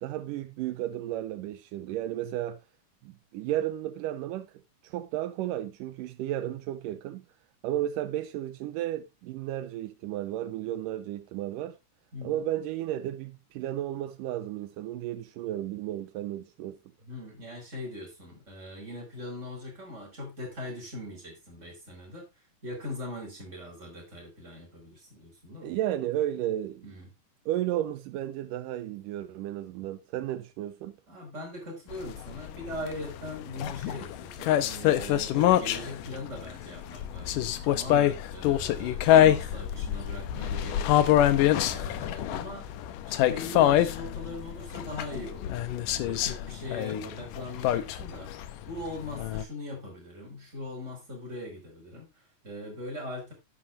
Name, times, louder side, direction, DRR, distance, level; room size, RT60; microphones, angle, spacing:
voice 1, 0.0-2.6 3.0-4.5 4.8-7.2 7.6-11.8 12.2-16.8 25.6-26.9 27.5-30.9, right 13 dB, 85° right, 2.3 m, -33 dB
voice 2, 12.1-12.5 17.0-22.3 22.6-25.7 26.8-27.1 31.1-41.1 41.6-42.7 43.1-53.3, left 1 dB, 20° right, 5.9 m, -41 dB
sound 1, 31.9-49.4, left 12 dB, 80° left, 2.5 m, -26 dB
11.0 x 11.0 x 2.7 m
omnidirectional pair, 3.8 m